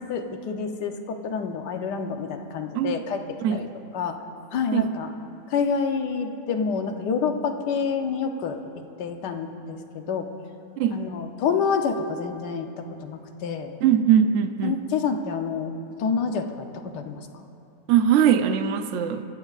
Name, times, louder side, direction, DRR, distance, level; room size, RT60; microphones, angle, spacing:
voice 1, 0.0-3.2 3.5-3.7 3.9-4.1 4.5-5.1 5.5-8.6 9.0-10.3 10.9-13.8 14.6-15.7 16.0-17.2, left 5 dB, 70° left, 5 dB, 1.4 m, -28 dB
voice 2, 13.8-14.8 17.9-19.2, right 9 dB, 70° right, 7 dB, 0.7 m, -21 dB
23.5 x 14.5 x 2.4 m, 2.6 s
omnidirectional pair, 2.0 m